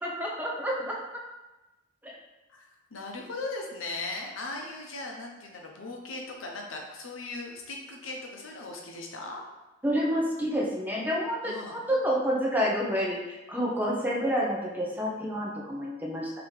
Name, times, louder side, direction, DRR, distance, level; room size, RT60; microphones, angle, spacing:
voice 1, 0.0-0.9 2.0-2.1 9.8-11.5 11.9-16.3, equal, 10° right, -3 dB, 0.6 m, -28 dB
voice 2, 2.5-9.4 11.4-11.8, left 2 dB, 85° left, 1 dB, 0.7 m, -38 dB
3.9 x 2.8 x 3.2 m, 1.1 s
head